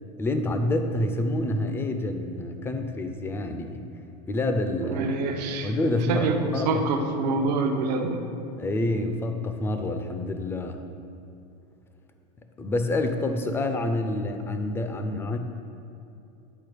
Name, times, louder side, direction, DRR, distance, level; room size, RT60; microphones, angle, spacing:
voice 1, 0.2-3.8 4.3-5.0 5.6-6.8 8.6-10.8 12.6-15.4, left 2 dB, 10° left, 7 dB, 0.4 m, -27 dB
voice 2, 4.8-5.7 6.1-8.2, right 3 dB, 80° right, 4 dB, 0.8 m, -26 dB
9.5 x 4.4 x 4.9 m, 2.8 s
supercardioid pair, 150°, 21 cm